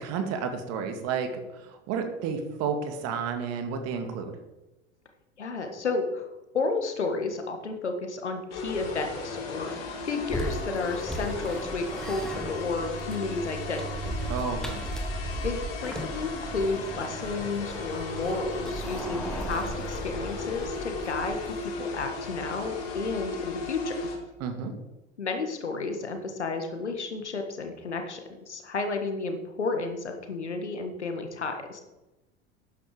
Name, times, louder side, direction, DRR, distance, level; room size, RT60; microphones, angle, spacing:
voice 1, 0.0-4.4 14.3-14.8 24.4-24.7, right 6 dB, 45° right, 6 dB, 2.2 m, -31 dB
voice 2, 5.4-6.3 6.5-9.8 10.1-14.1 15.4-24.0 25.2-28.2 28.5-31.8, left 3 dB, 80° left, 6 dB, 1.9 m, -32 dB
sound 1, 8.5-24.2, left 3 dB, 50° left, 3.8 m, -36 dB
sound 2, 10.3-21.7, right 1 dB, ahead, 1.7 m, -37 dB
12.0 x 9.4 x 5.0 m, 1.0 s
figure-of-eight pair, 75°, 34 cm